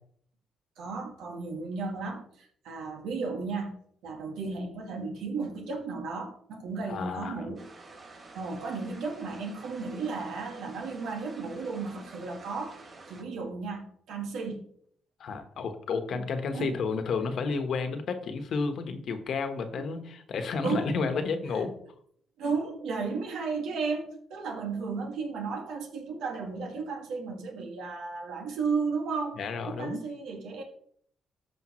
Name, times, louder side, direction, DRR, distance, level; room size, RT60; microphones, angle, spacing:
voice 1, 0.8-7.7 7.9-12.8 13.1-14.6 16.5-16.8 19.8-20.0 20.6-20.9 22.4-29.4 29.7-30.6, right 4 dB, 80° right, 2 dB, 2.0 m, -34 dB
voice 2, 6.9-7.5 15.2-21.7 29.4-30.0, left 4 dB, 65° left, 8 dB, 1.2 m, -31 dB
sound 1, 7.6-13.2, right 3 dB, 45° right, 3.5 m, -49 dB
13.5 x 5.2 x 3.1 m, 0.64 s
cardioid pair, 90°, 0 cm